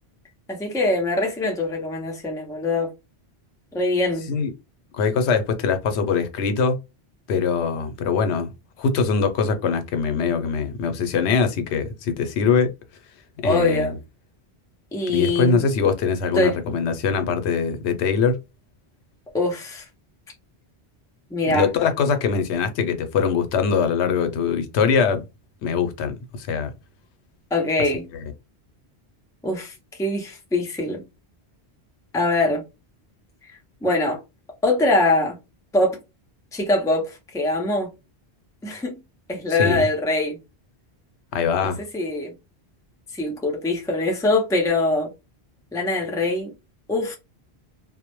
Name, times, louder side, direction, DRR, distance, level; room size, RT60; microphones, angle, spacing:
voice 1, 0.5-2.9 3.7-4.3 13.4-13.9 14.9-15.7 16.3-16.6 19.3-19.9 21.3-21.7 27.5-28.1 29.4-31.0 32.1-32.6 33.5-34.2 34.6-35.4 35.7-36.0 36.5-37.9 38.6-38.9 39.3-40.4 41.9-42.3 43.1-45.1 45.7-46.5 46.9-47.1, left 2 dB, 5° left, 0.4 m, -23 dB
voice 2, 4.9-6.8 7.3-8.5 8.8-12.7 13.4-14.0 15.1-18.4 21.5-25.2 25.6-26.7 39.6-39.9 41.3-41.8, left 5 dB, 90° left, 0.9 m, -22 dB
2.1 x 2.0 x 2.9 m
omnidirectional pair, 1.1 m